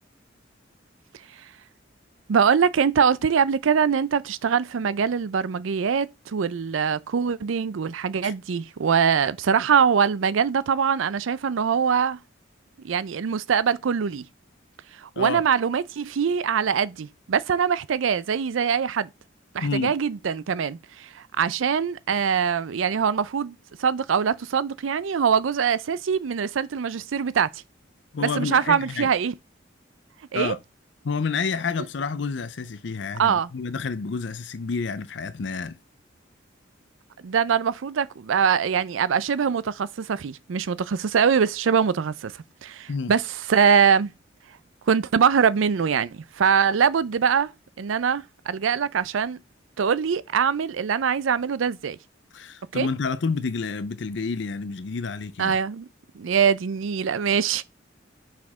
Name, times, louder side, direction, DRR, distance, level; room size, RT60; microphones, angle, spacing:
voice 1, 2.3-12.2 12.8-14.2 15.0-19.1 19.5-27.5 28.2-29.3 30.3-30.6 33.2-33.5 37.2-42.3 42.6-44.1 44.9-47.5 47.8-49.4 49.8-52.0 52.7-52.9 55.4-55.9 56.2-57.6, right 7 dB, 85° right, 0.4 m, -23 dB
voice 2, 19.6-19.9 28.1-29.1 30.3-30.6 31.0-35.8 42.9-43.1 52.3-55.6, left 4 dB, 65° left, 0.5 m, -29 dB
5.8 x 4.9 x 3.6 m
head